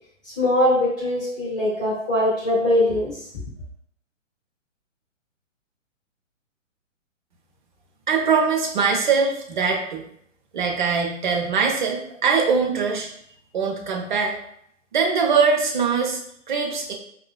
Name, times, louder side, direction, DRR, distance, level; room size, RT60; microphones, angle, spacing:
voice 1, 0.2-3.2, left 1 dB, 5° left, -11 dB, 0.4 m, -21 dB
voice 2, 8.1-10.0 10.5-13.1 13.5-14.4 14.9-16.2 16.5-16.9, right 5 dB, 40° right, 1 dB, 0.6 m, -22 dB
5.4 x 2.3 x 2.2 m, 0.70 s
figure-of-eight pair, 125°, 39 cm